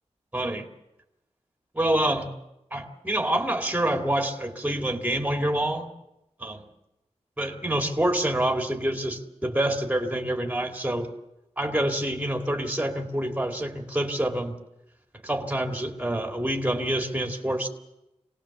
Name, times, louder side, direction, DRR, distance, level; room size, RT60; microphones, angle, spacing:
voice 1, 0.3-0.7 1.7-2.3 2.7-5.9 6.4-6.7 7.4-11.1 11.6-14.6 15.2-17.7, right 1 dB, 10° right, 3 dB, 2.1 m, -27 dB
25.5 x 18.5 x 7.1 m, 0.89 s
wide cardioid pair, 105°, 12 cm